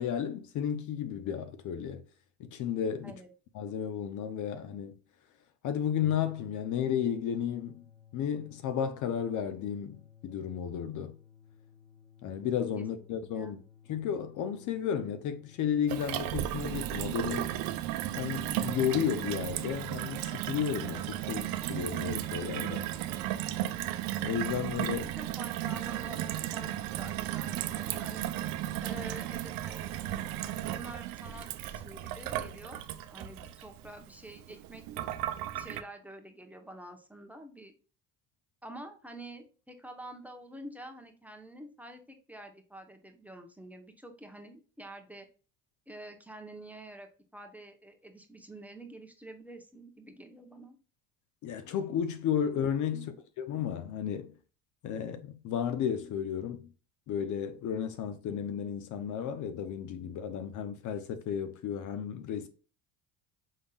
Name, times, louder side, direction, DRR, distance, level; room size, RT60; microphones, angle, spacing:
voice 1, 0.0-2.0 2.4-3.1 3.5-5.0 5.6-7.8 8.1-11.2 12.2-13.6 13.9-17.5 18.2-22.9 24.2-25.1 51.4-53.1 53.4-54.3 54.8-56.7 57.1-62.5, left 8 dB, 55° left, 0.6 m, -33 dB
sound 1, 6.0-17.8, left 6 dB, 10° left, 0.4 m, -58 dB
voice 2, 13.3-13.6 24.9-28.3 28.8-29.9 30.6-32.8 33.1-35.2 35.5-37.7 38.6-45.3 45.9-50.8 52.9-53.1, right 1 dB, 5° right, 0.9 m, -48 dB
Gurgling / Water tap faucet / Sink (filling or washing), 15.9-35.8, right 13 dB, 70° right, 0.6 m, -35 dB
5.4 x 3.5 x 2.3 m
supercardioid pair, 90°, 36 cm